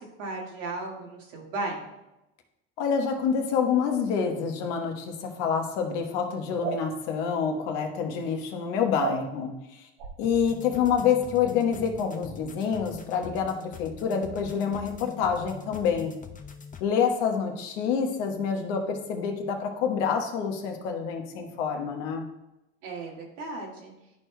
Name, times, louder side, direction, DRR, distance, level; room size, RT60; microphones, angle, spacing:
voice 1, 0.2-1.9 22.8-23.9, right 2 dB, 90° right, -2 dB, 1.9 m, -35 dB
voice 2, 2.8-9.9 10.2-16.2 16.8-22.3, left 7 dB, 75° left, 3 dB, 1.3 m, -27 dB
sound 1, 6.6-6.8 9.0-9.2 10.0-10.1, right 6 dB, 70° right, 1.2 m, -30 dB
sound 2, 10.2-16.8, left 6 dB, 20° left, 0.7 m, -44 dB
12.0 x 4.6 x 2.3 m, 0.95 s
hypercardioid pair, 80°, 36 cm